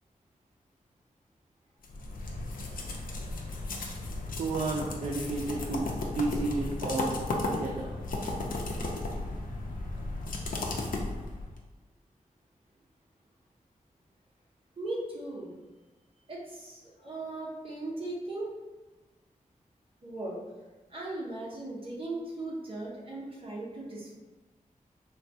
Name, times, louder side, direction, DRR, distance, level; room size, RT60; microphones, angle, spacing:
sound 1, 1.8-11.6, left 2 dB, 90° left, 0.5 m, -35 dB
voice 1, 4.4-7.2 7.5-7.9, right 3 dB, 65° right, -2 dB, 0.4 m, -32 dB
voice 2, 14.8-15.5 16.3-18.5 20.0-20.4 20.9-24.1, right 2 dB, 40° right, -5 dB, 0.7 m, -38 dB
3.7 x 2.2 x 2.7 m, 1.2 s
wide cardioid pair, 135°, 14 cm